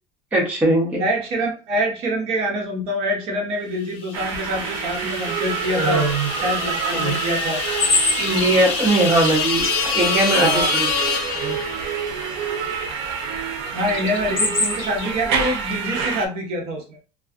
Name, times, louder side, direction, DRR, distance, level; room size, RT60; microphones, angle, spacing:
voice 1, 0.3-1.0 5.7-6.3 6.9-7.2 8.2-10.8 11.3-11.6, right 2 dB, 10° right, -4 dB, 0.7 m, -20 dB
voice 2, 1.0-6.0 6.4-7.6 10.4-10.7 13.7-17.0, equal, 45° right, 1 dB, 0.8 m, -25 dB
sound 1, 4.1-12.1, left 6 dB, 70° left, 0.7 m, -26 dB
sound 2, 4.1-16.3, right 6 dB, 75° right, 0.6 m, -28 dB
sound 3, 7.8-9.7 13.8-15.1, left 3 dB, 35° left, 1.4 m, -23 dB
2.5 x 2.3 x 2.3 m, 0.35 s
cardioid pair, 160°, 14 cm